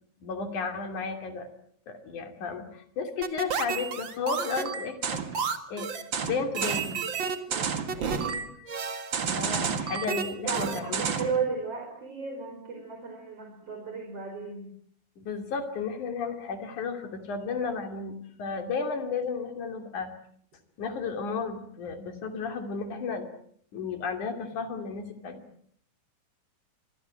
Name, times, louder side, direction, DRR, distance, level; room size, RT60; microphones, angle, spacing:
voice 1, 0.2-1.5 1.9-5.2 5.7-5.9 6.2-7.0 9.3-11.0 15.2-20.1 20.8-23.3 23.7-25.4, left 5 dB, 45° left, 7 dB, 3.7 m, -33 dB
sound 1, 3.2-11.4, right 6 dB, 75° right, 1.0 m, -30 dB
voice 2, 7.5-8.4 10.4-14.7, right 5 dB, 30° right, 2 dB, 5.8 m, -35 dB
26.5 x 22.0 x 7.7 m, 0.64 s
omnidirectional pair, 5.2 m